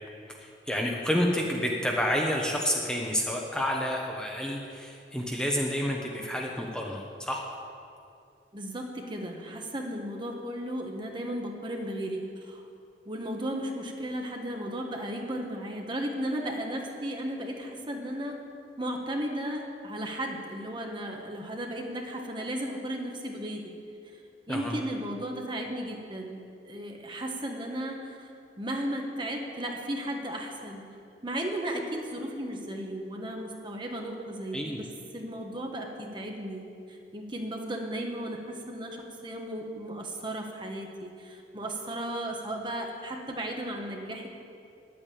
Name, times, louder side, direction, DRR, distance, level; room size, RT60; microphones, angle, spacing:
voice 1, 0.3-7.4 24.5-24.8 34.5-34.8, equal, 5° left, -1 dB, 0.9 m, -29 dB
voice 2, 8.5-12.6 13.0-18.4 18.8-23.7 24.5-26.4 26.6-28.3 28.6-30.8 31.2-34.8 35.1-44.3, right 1 dB, 25° right, 1 dB, 1.4 m, -35 dB
10.5 x 8.8 x 8.7 m, 2.5 s
head